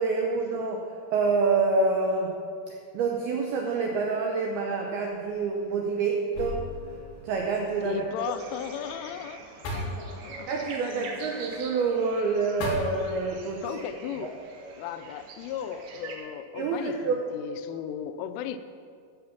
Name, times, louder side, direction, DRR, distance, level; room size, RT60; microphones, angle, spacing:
voice 1, 0.0-2.4 2.7-6.7 7.2-8.1 10.5-13.6 16.6-17.3, right 4 dB, 85° right, 0 dB, 2.2 m, -27 dB
sound 1, 5.1-5.6 6.3-9.2 9.6-11.3 12.6-13.9, left 1 dB, 60° left, 3.8 m, -39 dB
voice 2, 7.8-9.4 9.8-10.5 10.9-11.3 13.6-14.4 14.8-18.6, left 9 dB, 90° left, 10 dB, 3.1 m, -36 dB
sound 2, 8.2-16.2, right 4 dB, 65° right, 2.6 m, -44 dB
12.5 x 7.8 x 5.8 m, 2.2 s
omnidirectional pair, 5.6 m